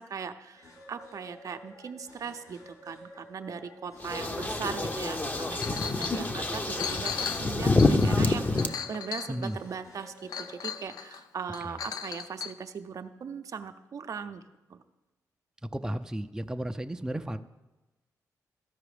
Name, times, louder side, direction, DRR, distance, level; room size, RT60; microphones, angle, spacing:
voice 1, 0.0-5.6 5.8-14.4 14.7-14.8, right 6 dB, 60° right, 8 dB, 0.6 m, -39 dB
sound 1, 0.5-10.8, equal, 65° left, 3.9 m, -51 dB
sound 2, 4.0-8.7, left 2 dB, 25° left, 0.7 m, -27 dB
Chink clink, 5.6-6.2 6.5-9.7 10.3-11.2 11.5-12.5, left 7 dB, 80° left, 0.5 m, -37 dB
voice 2, 15.6-17.4, right 1 dB, 10° right, 8 dB, 0.4 m, -34 dB
13.5 x 5.0 x 4.9 m, 1.1 s
cardioid pair, 70°, 7 cm